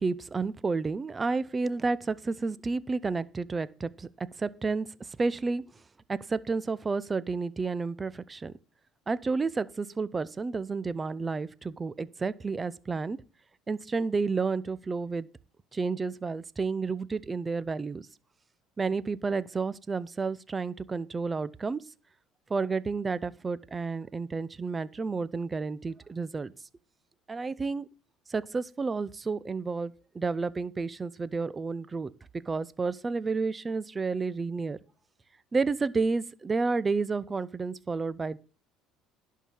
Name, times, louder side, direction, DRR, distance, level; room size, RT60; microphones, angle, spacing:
voice 1, 0.0-4.9 5.2-5.6 6.1-8.5 9.1-13.2 13.7-15.3 15.7-18.1 18.8-21.8 22.5-26.5 27.3-27.9 28.3-32.1 32.5-34.8 35.5-38.4, right 4 dB, 20° right, 0.6 m, -31 dB
11.0 x 4.7 x 7.0 m
supercardioid pair, 110°, 0 cm